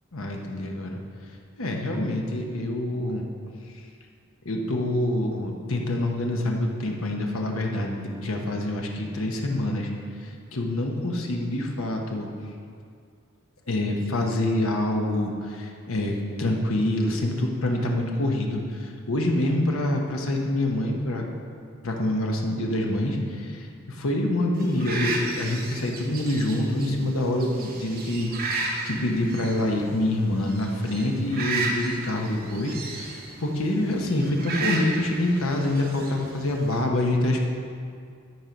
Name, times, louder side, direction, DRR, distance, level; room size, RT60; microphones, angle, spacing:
voice 1, 0.1-1.0 1.6-3.3 4.4-9.9 10.2-12.3 13.7-21.2 21.8-37.5, left 1 dB, 75° left, 1 dB, 1.1 m, -26 dB
sound 1, 24.6-36.8, right 3 dB, 45° right, 1.0 m, -34 dB
12.5 x 4.5 x 5.2 m, 2.3 s
head